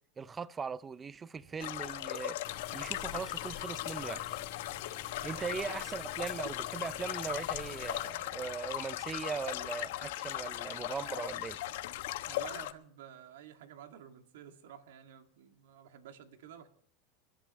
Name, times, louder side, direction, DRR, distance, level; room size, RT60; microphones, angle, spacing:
voice 1, 0.2-2.4 2.7-4.2 5.2-11.6, right 5 dB, 20° right, 0.5 m, -39 dB
sound 1, 1.3-12.5, right 4 dB, 55° right, 6.4 m, -61 dB
sound 2, 1.6-12.7, left 15 dB, 75° left, 0.9 m, -38 dB
sound 3, 2.4-8.1, left 11 dB, 45° left, 2.2 m, -47 dB
voice 2, 5.2-5.6 12.3-16.7, right 9 dB, 85° right, 2.0 m, -51 dB
28.5 x 11.5 x 3.1 m
supercardioid pair, 145°, 0 cm